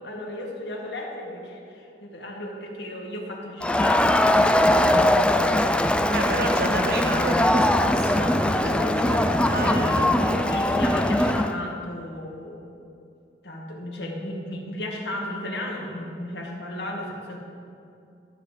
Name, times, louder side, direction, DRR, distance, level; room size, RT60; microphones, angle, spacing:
voice 1, 0.0-5.9 8.5-9.1 9.5-12.6 13.4-17.4, left 1 dB, 65° left, 0 dB, 1.7 m, -35 dB
Crowd, 3.6-11.5, left 1 dB, 5° left, 0.3 m, -21 dB
voice 2, 6.1-10.6, right 1 dB, 60° right, 1 dB, 1.5 m, -30 dB
12.5 x 7.4 x 5.0 m, 2.5 s
head